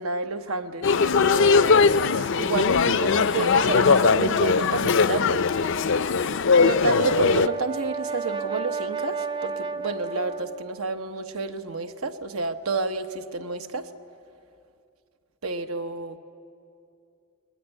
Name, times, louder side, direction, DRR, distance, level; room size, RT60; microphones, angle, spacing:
voice 1, 0.0-5.4 6.6-13.9 15.4-16.2, right 3 dB, 75° right, 7 dB, 1.1 m, -30 dB
sound 1, 0.8-7.5, left 5 dB, 55° left, 0.5 m, -20 dB
Brass instrument, 6.6-10.8, right 5 dB, 20° right, 0.5 m, -32 dB
21.0 x 19.5 x 9.9 m, 2.5 s
head